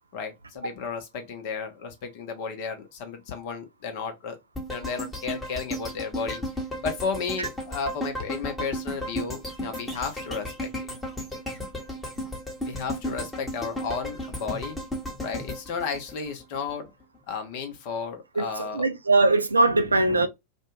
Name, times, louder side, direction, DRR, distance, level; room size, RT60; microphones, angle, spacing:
voice 1, 0.1-4.4 4.7-6.4 6.8-10.9 12.6-14.8 15.2-16.9 17.3-18.9 19.9-20.3, left 5 dB, 45° left, 0.8 m, -33 dB
sound 1, 4.5-16.7 17.1-17.2, equal, 5° left, 1.0 m, -34 dB
voice 2, 18.4-20.3, right 2 dB, 80° right, 0.3 m, -21 dB
2.5 x 2.2 x 3.0 m
figure-of-eight pair, 90°, 0 cm